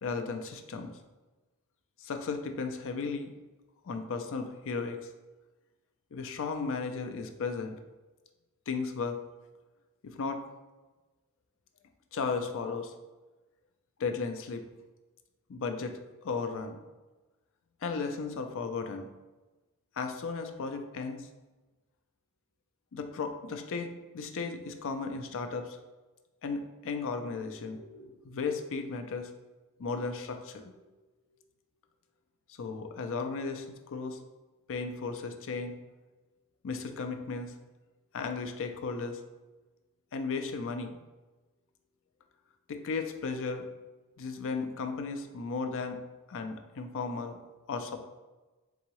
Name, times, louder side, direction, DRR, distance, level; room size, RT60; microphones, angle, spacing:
voice 1, 0.0-0.9 2.0-3.3 3.8-5.1 6.1-7.8 8.7-9.2 10.0-10.4 12.1-12.9 14.0-14.6 15.5-16.8 17.8-19.1 20.0-21.3 22.9-25.8 26.4-29.3 29.8-30.7 32.6-34.2 34.7-35.7 36.6-37.5 38.1-39.2 40.1-41.0 42.7-43.7 44.2-46.0 46.3-47.4 47.7-48.0, left 4 dB, 60° left, 6 dB, 0.4 m, -35 dB
3.9 x 3.6 x 3.1 m, 1.2 s
head